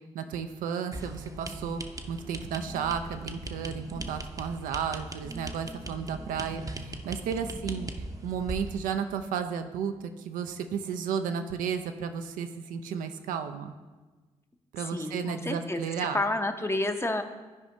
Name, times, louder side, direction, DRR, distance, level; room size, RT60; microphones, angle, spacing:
voice 1, 0.1-7.9 8.2-13.7 14.7-16.2, right 7 dB, 75° right, 7 dB, 0.4 m, -33 dB
sound 1, 0.9-8.8, right 2 dB, 25° right, 0.7 m, -39 dB
voice 2, 14.8-17.2, left 2 dB, 20° left, 7 dB, 0.7 m, -30 dB
11.5 x 5.0 x 2.7 m, 1.3 s
hypercardioid pair, 45°, 14 cm